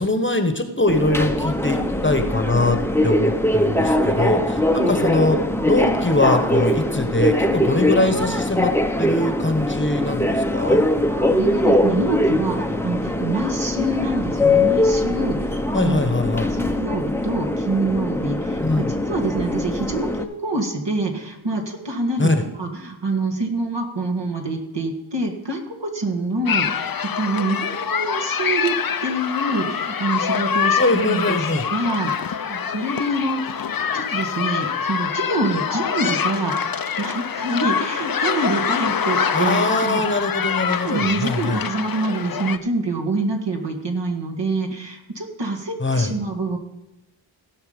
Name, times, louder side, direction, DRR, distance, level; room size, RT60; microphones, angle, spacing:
voice 1, 0.0-5.4 5.6-8.7 9.0-10.8 15.7-16.5 18.6-18.9 22.2-22.4 30.8-31.6 39.3-41.6 45.8-46.1, left 2 dB, 25° left, 7 dB, 1.2 m, -22 dB
Subway metro underground, 0.9-20.2, left 1 dB, 5° left, 0.8 m, -22 dB
voice 2, 11.3-16.1 16.5-28.7 29.0-33.6 33.9-40.0 40.8-46.6, right 2 dB, 60° right, 3 dB, 2.0 m, -26 dB
sound 1, 26.5-42.6, left 7 dB, 45° left, 0.7 m, -25 dB
16.5 x 5.8 x 5.2 m, 0.97 s
cardioid pair, 45°, 48 cm